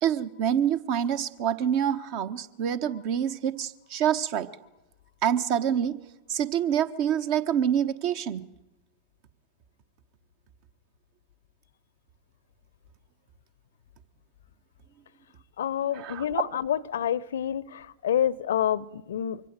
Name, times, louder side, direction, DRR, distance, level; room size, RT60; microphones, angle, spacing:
voice 1, 0.0-4.6 5.2-6.0 6.3-8.4 15.9-16.4, right 9 dB, 45° right, 1.0 m, -26 dB
voice 2, 15.6-19.4, left 10 dB, 60° left, 0.7 m, -28 dB
24.0 x 16.0 x 9.1 m
figure-of-eight pair, 90°, 0 cm